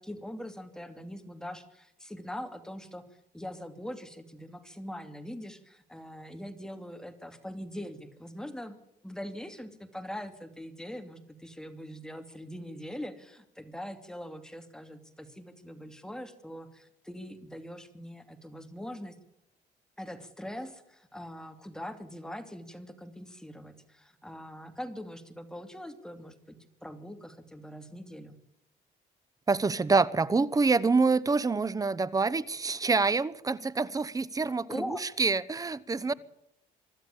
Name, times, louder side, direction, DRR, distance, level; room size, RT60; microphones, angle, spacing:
voice 1, 0.0-3.1 3.3-8.8 9.0-19.2 20.0-28.4 34.7-35.0, equal, 5° left, 7 dB, 2.6 m, -42 dB
voice 2, 29.5-36.1, right 4 dB, 20° right, 19 dB, 0.9 m, -26 dB
24.5 x 13.0 x 8.5 m, 0.81 s
cardioid pair, 110°, 17 cm